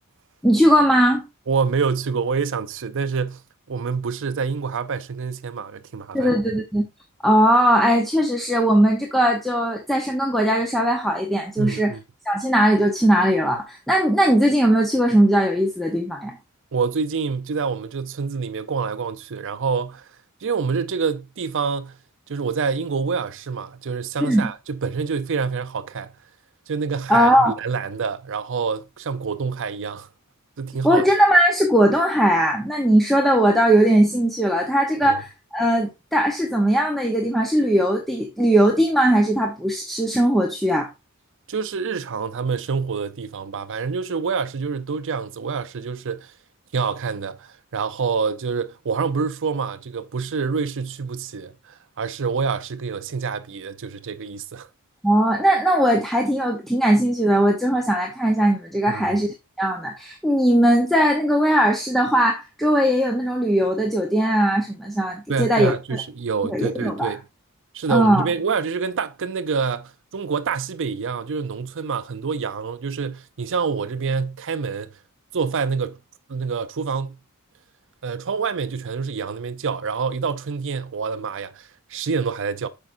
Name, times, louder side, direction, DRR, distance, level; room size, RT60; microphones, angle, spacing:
voice 1, 0.4-1.2 6.1-6.9 7.2-11.9 12.3-16.4 24.3-24.5 27.1-27.5 30.8-40.9 55.0-65.7 66.4-67.1 67.9-68.2, right 1 dB, ahead, 0.8 m, -19 dB
voice 2, 1.5-3.4 3.7-6.3 11.6-12.0 16.7-20.0 20.4-22.0 22.3-26.1 26.7-30.1 30.6-31.0 35.0-35.2 41.5-46.3 46.7-54.7 58.9-59.0 65.3-67.2 67.7-74.9 75.3-76.0 76.3-77.2 78.0-82.7, right 5 dB, 55° right, 0.6 m, -27 dB
8.0 x 6.0 x 2.6 m
head